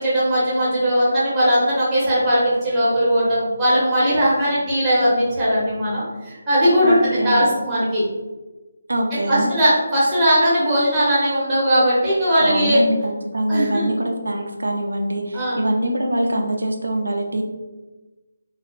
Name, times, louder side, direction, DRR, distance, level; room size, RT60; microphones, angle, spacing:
voice 1, 0.0-8.0 9.3-12.8 13.5-13.9 15.3-15.6, equal, 10° right, -9 dB, 0.9 m, -19 dB
voice 2, 6.8-7.5 8.9-9.5 12.4-17.4, right 1 dB, 70° right, 2 dB, 0.5 m, -23 dB
3.0 x 2.3 x 2.5 m, 1.2 s
figure-of-eight pair, 150°, 0 cm